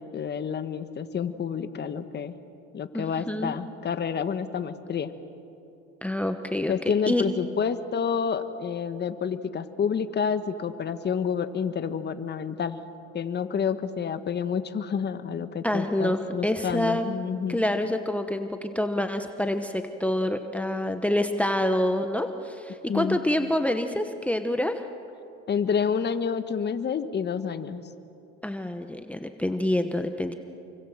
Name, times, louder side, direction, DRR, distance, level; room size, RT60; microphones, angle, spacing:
voice 1, 0.0-2.4 2.7-5.1 6.7-12.8 13.1-17.6 22.9-23.2 25.5-27.8, left 7 dB, 35° left, 10 dB, 1.5 m, -29 dB
voice 2, 2.9-3.5 6.0-7.2 15.6-17.1 17.5-24.8 28.4-30.3, left 1 dB, 5° left, 7 dB, 1.1 m, -27 dB
29.0 x 24.0 x 7.4 m, 2.8 s
cardioid pair, 105°, 29 cm